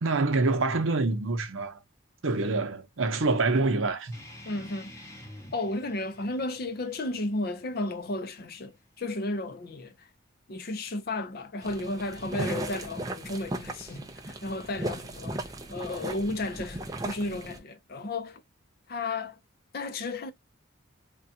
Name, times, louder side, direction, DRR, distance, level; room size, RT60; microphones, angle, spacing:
voice 1, 0.0-1.8 2.2-4.2, right 3 dB, 70° right, 0.7 m, -26 dB
sound 1, 4.1-9.2, left 1 dB, 15° left, 0.7 m, -50 dB
voice 2, 4.5-4.9 5.5-9.9 10.5-18.4 18.9-19.4 19.7-20.3, left 2 dB, 45° left, 0.5 m, -33 dB
sound 2, 11.6-17.6, right 1 dB, 15° right, 0.4 m, -36 dB
3.6 x 2.2 x 2.7 m
head